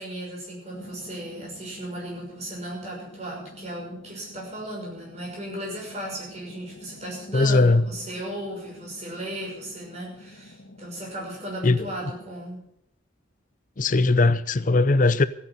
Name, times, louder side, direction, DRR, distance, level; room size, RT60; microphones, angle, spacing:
voice 1, 0.0-12.7, right 1 dB, 35° right, 6.1 m, -36 dB
sound 1, 0.7-12.3, left 1 dB, 65° left, 2.0 m, -48 dB
voice 2, 7.3-7.9 11.6-11.9 13.8-15.3, left 3 dB, 40° left, 0.6 m, -19 dB
15.5 x 9.7 x 7.8 m
head